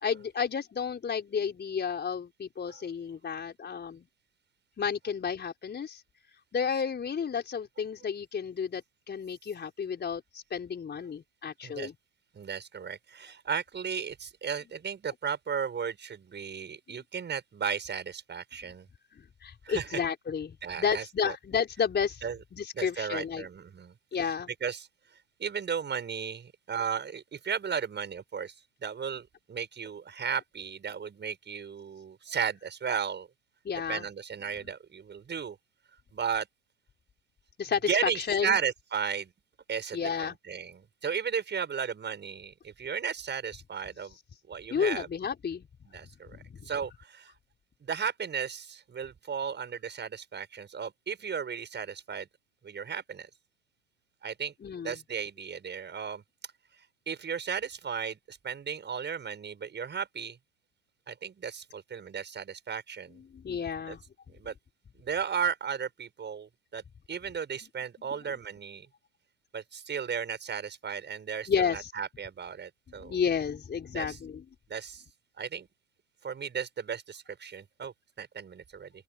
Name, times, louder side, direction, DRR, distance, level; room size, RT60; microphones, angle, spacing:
voice 1, 0.0-4.0 4.8-6.0 6.5-11.9 16.9-17.0 19.4-22.2 22.5-23.5 24.1-24.5 33.6-34.1 37.6-38.6 39.9-40.3 44.7-45.6 46.6-46.7 54.6-55.0 63.3-64.0 71.5-71.9 73.0-74.4, left 7 dB, 25° left, 4.7 m, -31 dB
voice 2, 12.4-18.9 19.6-20.0 20.6-21.3 22.2-22.4 22.7-23.9 24.6-24.9 25.4-28.5 28.8-33.3 33.9-35.6 36.1-36.5 37.9-39.3 39.7-44.1 44.5-45.1 45.9-46.3 46.6-47.3 47.8-52.3 52.6-53.3 54.2-54.5 54.8-56.2 57.1-60.4 61.1-63.2 63.9-64.0 64.4-64.5 65.0-66.8 67.1-68.9 69.5-73.2 73.9-74.2 74.7-75.0 75.4-75.7 76.2-78.9, right 7 dB, 25° right, 6.6 m, -35 dB
open air
hypercardioid pair, 80°, 39 cm